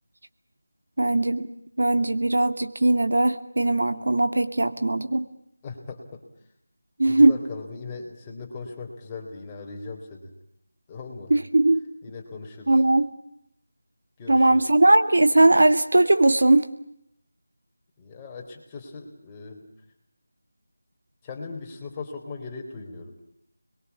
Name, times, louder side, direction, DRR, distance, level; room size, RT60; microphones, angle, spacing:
voice 1, 1.0-1.5 1.8-5.2 7.0-7.4 11.3-11.8 12.7-13.1 14.3-16.6, right 2 dB, 70° right, 9 dB, 2.4 m, -19 dB
voice 2, 5.6-6.2 7.1-10.3 10.9-11.3 12.0-12.8 14.2-14.7 18.0-19.6 21.2-23.1, left 4 dB, 15° left, 1 dB, 3.8 m, -38 dB
29.0 x 22.5 x 8.4 m, 0.74 s
figure-of-eight pair, 170°, 0 cm